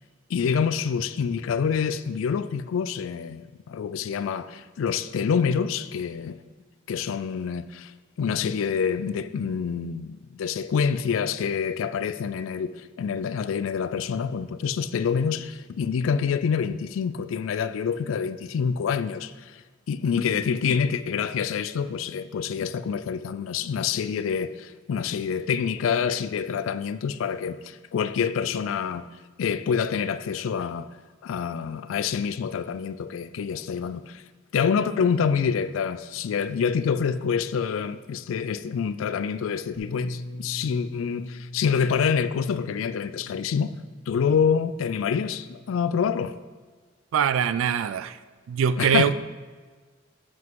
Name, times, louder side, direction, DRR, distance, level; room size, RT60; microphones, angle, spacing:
voice 1, 0.3-6.4 6.9-7.9 8.2-19.3 19.9-29.1 29.4-30.9 31.2-34.2 34.5-43.7 44.1-46.3 48.8-49.1, left 6 dB, 85° left, 0.3 m, -26 dB
Bass guitar, 39.8-46.0, left 1 dB, 25° left, 0.9 m, -43 dB
voice 2, 47.1-48.2 48.5-49.1, right 8 dB, 80° right, 0.3 m, -23 dB
7.6 x 5.9 x 3.7 m
head